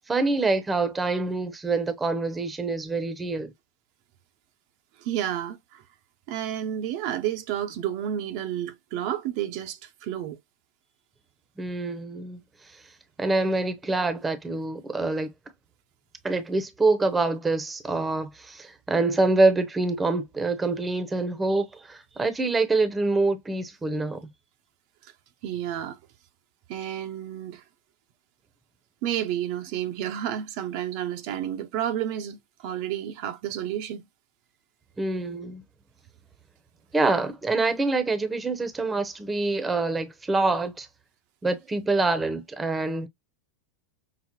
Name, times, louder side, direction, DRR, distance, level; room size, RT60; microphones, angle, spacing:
voice 1, 0.1-3.5 11.6-12.4 13.2-15.3 16.2-24.2 35.0-35.6 36.9-40.9 41.4-43.1, right 3 dB, 15° right, 0.7 m, -25 dB
voice 2, 5.0-5.8 6.3-10.4 25.4-26.0 26.7-27.6 29.0-32.4 32.6-34.0, right 11 dB, 60° right, 0.6 m, -30 dB
5.8 x 2.0 x 2.9 m
hypercardioid pair, 110°, 0 cm